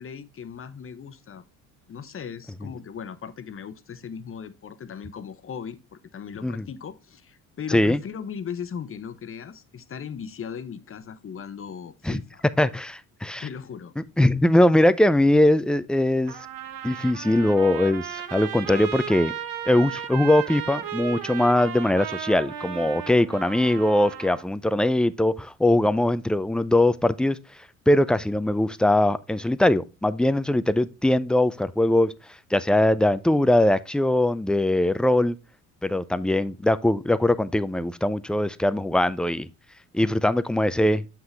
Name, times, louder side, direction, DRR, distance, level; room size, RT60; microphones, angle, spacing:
voice 1, 0.0-1.4 1.9-12.4 13.3-13.9, left 7 dB, 35° left, 0.9 m, -38 dB
voice 2, 12.6-13.4 14.2-16.3 16.8-19.3 19.7-27.4 27.9-32.1 32.5-35.4 35.8-39.5 39.9-41.0, left 1 dB, ahead, 0.4 m, -21 dB
Trumpet, 16.3-24.4, right 9 dB, 65° right, 1.2 m, -35 dB
7.6 x 5.8 x 3.3 m
supercardioid pair, 65°, 37 cm